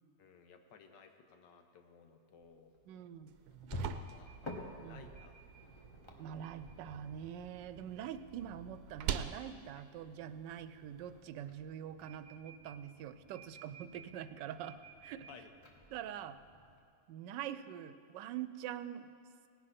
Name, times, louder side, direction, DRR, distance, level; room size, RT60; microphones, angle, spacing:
voice 1, 0.2-2.7 3.9-4.4 4.8-5.4 15.3-15.5, left 6 dB, 85° left, 6 dB, 1.6 m, -58 dB
sound 1, 2.4-16.8, equal, 20° left, 1.0 m, -52 dB
voice 2, 2.9-3.7 4.8-5.0 6.2-15.3 15.9-16.4 17.1-19.1, right 10 dB, 90° right, 12 dB, 1.2 m, -45 dB
sound 2, 3.3-11.2, right 8 dB, 70° right, 1.0 m, -46 dB
18.0 x 10.5 x 4.2 m, 2.5 s
omnidirectional pair, 1.9 m